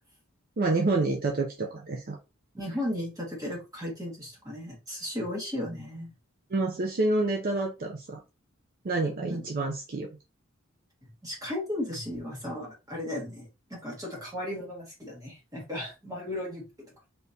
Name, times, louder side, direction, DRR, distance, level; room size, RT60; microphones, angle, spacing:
voice 1, 0.6-2.2 6.5-8.2 8.8-10.1, right 2 dB, 45° right, 2 dB, 0.5 m, -28 dB
voice 2, 2.5-6.1 9.2-9.4 11.2-16.7, left 1 dB, 20° right, -2 dB, 1.4 m, -35 dB
3.5 x 2.9 x 2.7 m, 0.28 s
head